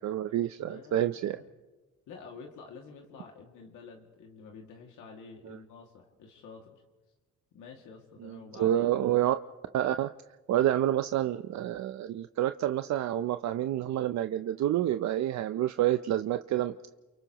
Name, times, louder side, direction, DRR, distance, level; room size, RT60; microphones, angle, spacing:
voice 1, 0.0-1.4 5.5-5.6 8.2-9.3 9.7-10.1 10.5-16.7, right 12 dB, 65° right, 9 dB, 0.6 m, -28 dB
voice 2, 0.6-1.4 2.1-6.8 7.5-9.2, left 5 dB, 85° left, 0 dB, 2.3 m, -49 dB
29.5 x 29.0 x 3.0 m, 1.2 s
cardioid pair, 90°, 30 cm